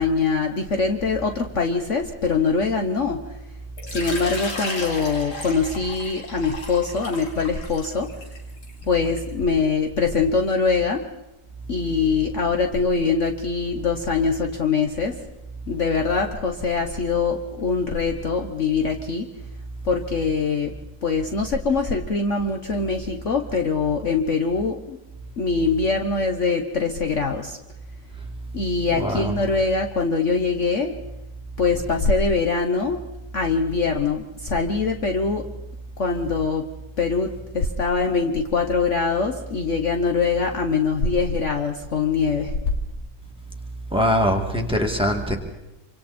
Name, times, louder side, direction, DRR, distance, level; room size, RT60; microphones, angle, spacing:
voice 1, 0.0-3.4 3.9-8.1 8.9-11.0 11.7-15.2 15.7-19.3 19.8-20.7 21.0-25.0 25.4-27.6 28.5-31.0 31.6-33.0 33.3-35.4 36.0-36.6 37.0-42.6, left 4 dB, 50° left, 4 dB, 1.3 m, -23 dB
Water / Liquid, 3.8-9.3, left 2 dB, 85° left, 3.3 m, -35 dB
voice 2, 29.0-29.3 43.9-45.4, equal, 5° right, 2 dB, 2.2 m, -22 dB
26.5 x 25.5 x 4.3 m, 0.94 s
omnidirectional pair, 1.7 m